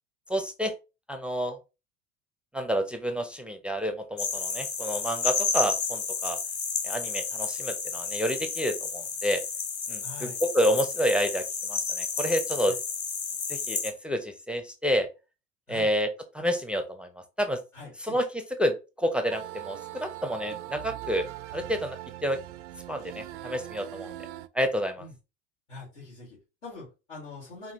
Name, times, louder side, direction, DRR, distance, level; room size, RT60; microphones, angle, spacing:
voice 1, 0.3-0.7 1.1-1.6 2.5-6.4 6.8-9.4 9.9-10.3 10.5-12.8 13.5-15.1 15.7-16.1 16.3-17.1 17.4-17.6 18.1-18.2 18.6-21.3 21.5-22.4 22.9-24.1 24.5-25.0, equal, 5° right, 7 dB, 0.5 m, -29 dB
sound 1, 4.2-13.9, left 5 dB, 35° left, 1.2 m, -31 dB
voice 2, 10.0-10.4 12.6-12.7 15.7-15.9 17.7-18.2 25.0-25.1 25.7-27.7, left 3 dB, 85° left, -7 dB, 2.3 m, -44 dB
sound 2, 19.3-24.5, right 15 dB, 70° right, 0.5 m, -41 dB
5.1 x 2.4 x 2.9 m, 0.29 s
hypercardioid pair, 75°, 37 cm